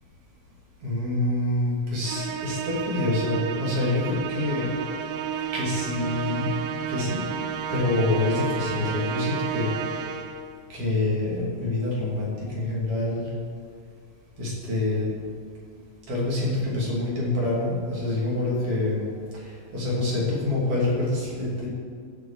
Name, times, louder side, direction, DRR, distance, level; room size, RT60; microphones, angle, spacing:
voice 1, 0.8-4.7 5.5-6.5 6.9-7.2 7.7-9.7 10.7-13.3 14.4-15.1 16.1-19.1 19.3-19.4 19.7-21.7, left 2 dB, 40° right, -6 dB, 3.5 m, -26 dB
Musical instrument, 2.0-10.5, right 8 dB, 80° right, 2.3 m, -31 dB
17.0 x 6.3 x 4.9 m, 2.1 s
omnidirectional pair, 4.4 m